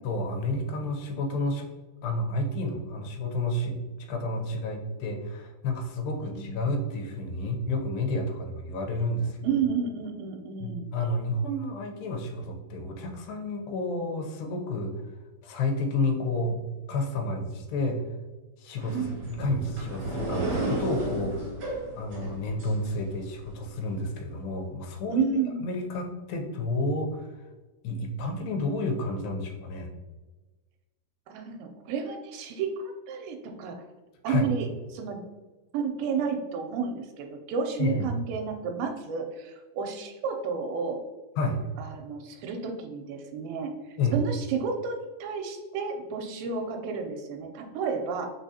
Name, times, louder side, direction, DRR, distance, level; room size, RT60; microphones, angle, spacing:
voice 1, 0.0-1.6 2.0-3.8 4.1-9.4 10.6-14.9 15.4-16.6 16.9-18.0 18.6-21.5 22.0-25.3 25.6-27.3 27.8-29.9 34.3-34.5 37.8-38.1 41.4-41.6 44.0-44.2, left 2 dB, 75° left, 3 dB, 2.2 m, -30 dB
voice 2, 6.2-6.7 9.4-10.9 18.9-19.2 25.1-25.6 31.3-33.8 34.2-34.7 34.9-35.2 35.7-41.0 41.8-48.3, right 5 dB, 80° right, 4 dB, 2.2 m, -31 dB
sound 1, 18.8-23.5, right 2 dB, 50° right, 1.9 m, -33 dB
4.9 x 4.0 x 2.7 m, 1.2 s
omnidirectional pair, 4.4 m